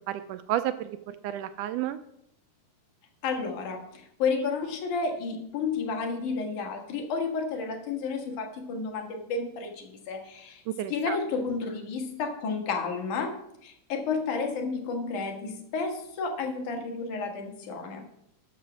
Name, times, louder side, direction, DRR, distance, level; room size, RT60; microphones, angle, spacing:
voice 1, 0.1-2.0 10.7-11.2, right 12 dB, 80° right, 11 dB, 1.9 m, -31 dB
voice 2, 3.2-10.6 10.9-18.0, left 4 dB, 70° left, 3 dB, 3.0 m, -31 dB
13.0 x 6.1 x 6.1 m, 0.77 s
omnidirectional pair, 3.8 m